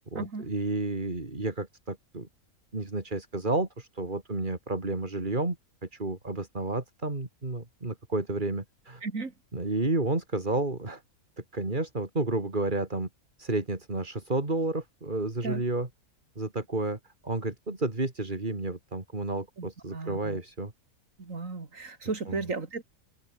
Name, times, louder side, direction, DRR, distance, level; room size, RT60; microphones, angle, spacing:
voice 1, 0.1-2.3 2.7-5.6 5.8-9.0 9.5-11.0 11.4-13.1 13.4-15.9 16.3-20.7 22.3-22.4, right 2 dB, 35° right, 3.3 m, -31 dB
voice 2, 9.0-9.3 15.4-15.6 19.6-20.4 21.2-22.8, right 4 dB, 65° right, 3.3 m, -35 dB
omnidirectional pair, 1.5 m